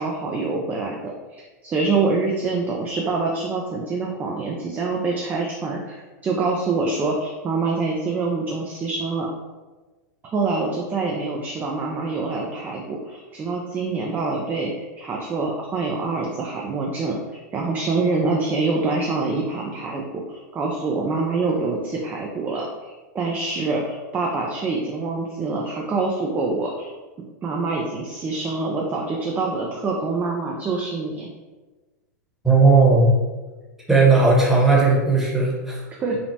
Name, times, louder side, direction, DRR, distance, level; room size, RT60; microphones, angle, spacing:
voice 1, 0.0-9.3 10.2-26.9 27.4-31.3 36.0-36.2, right 3 dB, 20° right, -1 dB, 0.3 m, -25 dB
voice 2, 32.4-33.1 33.9-35.8, right 3 dB, 5° right, -5 dB, 0.9 m, -16 dB
3.1 x 2.0 x 2.7 m, 1.2 s
hypercardioid pair, 105°, 10 cm